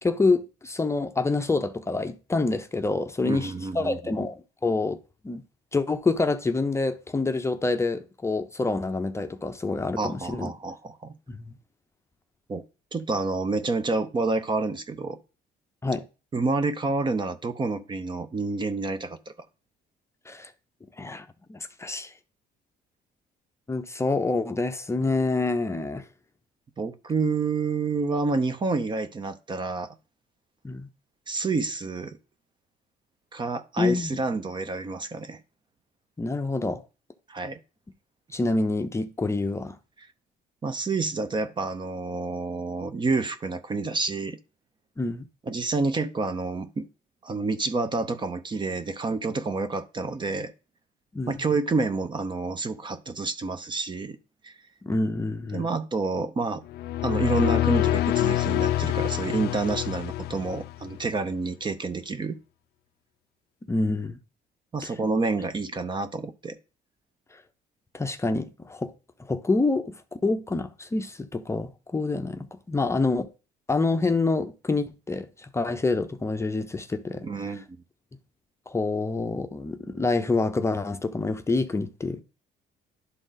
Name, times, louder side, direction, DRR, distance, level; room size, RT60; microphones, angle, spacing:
voice 1, 0.0-5.0 5.2-5.4 5.7-10.5 11.3-11.5 15.8-16.0 20.3-20.5 21.0-22.1 23.7-26.0 30.6-30.9 33.8-34.2 36.2-36.8 38.3-39.8 45.0-45.2 51.1-51.4 54.8-55.7 63.7-64.2 64.8-64.9 67.9-68.9 69.3-69.9 70.2-73.3 73.7-77.3 78.7-82.2, left 3 dB, 15° left, 0.6 m, -27 dB
voice 2, 3.2-4.2 10.0-11.1 12.5-12.6 12.9-15.2 16.3-19.2 26.8-30.0 31.3-32.2 33.3-35.4 37.3-37.6 40.0-40.1 40.6-44.4 45.5-46.9 47.2-50.5 51.3-54.2 54.4-54.5 55.5-56.6 57.0-62.4 64.7-66.6 77.2-77.8, right 3 dB, 25° right, 0.7 m, -28 dB
sound 1, 56.7-61.0, left 14 dB, 70° left, 0.5 m, -26 dB
11.0 x 3.9 x 3.9 m
cardioid pair, 110°, 17 cm